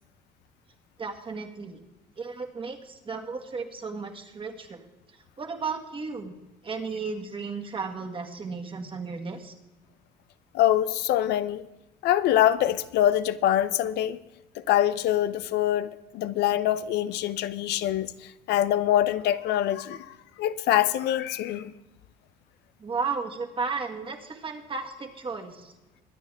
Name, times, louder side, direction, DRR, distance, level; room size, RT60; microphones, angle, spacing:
voice 1, 1.0-1.8 2.2-6.3 6.6-9.5 22.8-25.7, right 4 dB, 30° right, 1.9 m, -34 dB
voice 2, 10.5-11.7 12.0-14.2 14.6-21.7, left 12 dB, 80° left, 0.6 m, -24 dB
23.0 x 9.2 x 3.5 m
cardioid pair, 110°, 17 cm